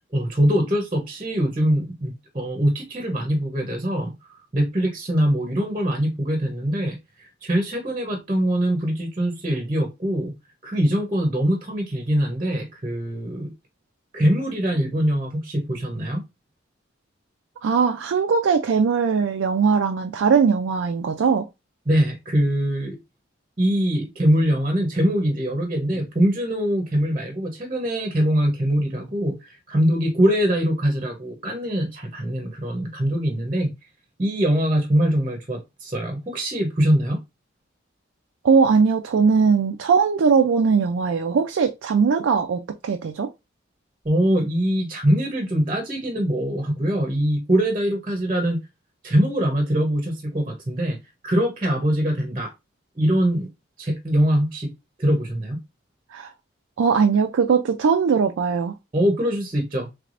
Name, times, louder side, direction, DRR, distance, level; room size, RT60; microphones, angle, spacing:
voice 1, 0.1-10.3 10.6-13.5 14.1-16.2 21.9-23.0 23.6-33.7 34.2-37.2 44.0-48.6 49.0-51.0 51.2-52.5 53.0-53.5 53.8-54.7 55.0-55.6 58.9-59.9, equal, 25° right, 0.8 m, -23 dB
voice 2, 17.6-21.5 38.4-43.3 56.1-56.3 56.8-58.7, right 5 dB, 85° right, 0.4 m, -20 dB
3.3 x 3.3 x 2.5 m
head